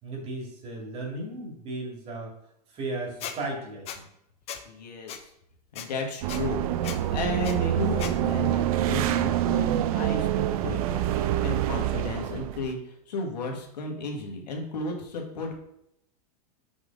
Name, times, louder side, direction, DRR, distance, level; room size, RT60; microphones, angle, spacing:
voice 1, 0.0-2.3 2.7-4.1, right 2 dB, 30° right, 0 dB, 2.2 m, -35 dB
Squeak, 3.2-3.3 3.9-4.0 4.5-4.6 5.1-5.2 5.7-5.9 6.3-6.4 6.8-7.0 7.4-7.5 8.0-8.1, left 9 dB, 30° left, 0.7 m, -36 dB
voice 2, 4.6-5.3 5.7-15.6, left 2 dB, 85° left, 2 dB, 1.7 m, -34 dB
sound 1, 6.2-12.7, right 12 dB, 60° right, 0.5 m, -26 dB
6.1 x 3.8 x 5.2 m, 0.77 s
hypercardioid pair, 130°, 21 cm